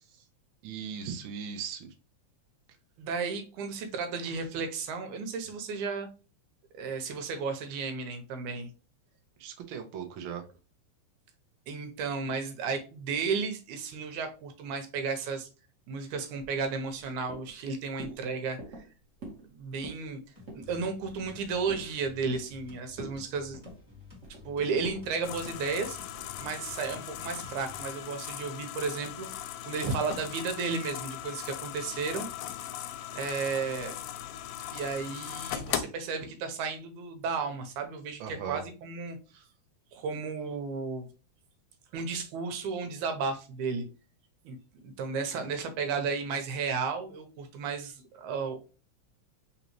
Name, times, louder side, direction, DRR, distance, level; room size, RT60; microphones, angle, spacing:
voice 1, 0.6-1.9 9.4-10.4 38.2-38.6, right 7 dB, 70° right, 4 dB, 1.2 m, -38 dB
voice 2, 3.0-6.1 6.7-8.7 11.7-15.5 15.9-18.9 19.5-20.2 20.5-23.6 24.5-26.0 26.4-29.3 29.7-32.3 33.1-34.0 34.7-39.4 39.9-41.1 41.9-43.9 44.4-44.6 44.8-48.6, right 5 dB, 90° right, 6 dB, 2.3 m, -33 dB
sound 1, 16.4-17.0 17.3-17.6 18.0-18.2 18.6-18.9 19.2-19.5 19.7-20.1 20.5-20.7 21.1-21.9 22.3-22.7 22.9-23.2 23.5-24.4 24.8-25.0 25.4-25.7 26.1-26.4, right 2 dB, 35° right, 1.2 m, -45 dB
sound 2, 20.4-27.9, left 5 dB, 15° right, 1.7 m, -52 dB
sound 3, 25.2-35.8, left 11 dB, 80° left, 1.7 m, -39 dB
4.1 x 4.0 x 3.0 m, 0.34 s
omnidirectional pair, 3.4 m